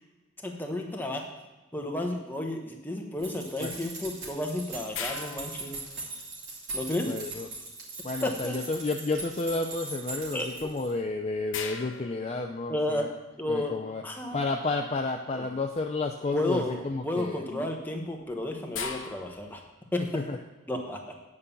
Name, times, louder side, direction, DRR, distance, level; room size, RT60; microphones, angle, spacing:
voice 1, 0.4-1.2 1.7-5.8 6.7-7.1 8.2-8.6 10.3-10.5 12.7-13.1 13.4-13.7 14.0-14.4 15.3-15.5 16.3-19.6 19.9-20.2 20.7-21.1, left 1 dB, 10° left, 1 dB, 1.0 m, -32 dB
sound 1, 3.2-10.9, right 3 dB, 60° right, 2.8 m, -40 dB
sound 2, 4.9-6.5 10.7-10.8 11.5-13.1 15.8-16.1 16.6-17.0 17.9-19.8, left 6 dB, 65° left, 0.9 m, -40 dB
voice 2, 7.1-7.5 8.0-13.1 13.5-14.0 14.3-17.7 20.1-20.4, left 3 dB, 30° left, 3 dB, 0.4 m, -31 dB
9.2 x 5.4 x 6.9 m, 1.2 s
head